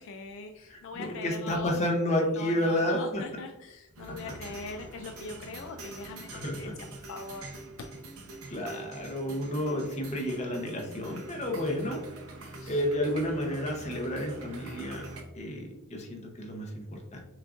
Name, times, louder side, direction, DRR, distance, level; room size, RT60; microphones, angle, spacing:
voice 1, 0.0-1.8 2.3-6.7 7.1-7.5 7.8-8.0 12.6-12.8, left 4 dB, 65° left, 5 dB, 0.3 m, -41 dB
voice 2, 0.7-3.2 4.1-4.3 6.3-6.8 8.5-12.0 12.7-15.0 15.3-17.2, equal, 35° left, 1 dB, 0.8 m, -31 dB
sound 1, 4.0-15.2, right 2 dB, 85° right, 0.8 m, -44 dB
6.2 x 2.4 x 2.4 m, 0.93 s
head